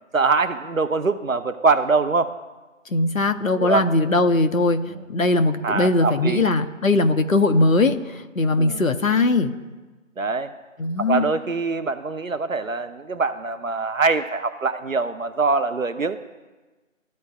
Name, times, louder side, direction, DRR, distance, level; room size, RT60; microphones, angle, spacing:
voice 1, 0.1-2.4 3.6-3.9 4.9-5.0 5.6-6.5 8.6-8.8 10.2-10.5 11.0-16.2, right 4 dB, 80° right, 11 dB, 0.8 m, -23 dB
voice 2, 2.9-4.8 5.1-9.5 10.8-11.3, left 2 dB, 85° left, 7 dB, 0.9 m, -20 dB
14.0 x 4.7 x 2.4 m, 1.2 s
figure-of-eight pair, 170°, 40 cm